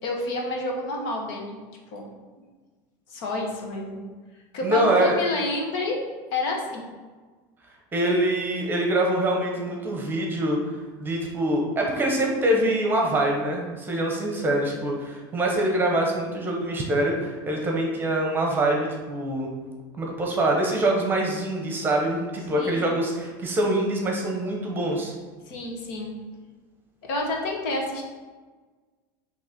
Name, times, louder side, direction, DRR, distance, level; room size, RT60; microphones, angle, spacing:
voice 1, 0.0-1.6 1.9-2.1 3.1-4.0 4.5-6.0 6.3-6.9 22.6-22.9 25.4-26.1 27.0-28.0, left 2 dB, 60° left, 0 dB, 1.4 m, -29 dB
voice 2, 4.6-5.2 7.9-10.6 11.0-19.5 20.0-25.1, right 1 dB, 15° right, 0 dB, 0.9 m, -24 dB
6.4 x 3.0 x 5.8 m, 1.4 s
supercardioid pair, 155°, 12 cm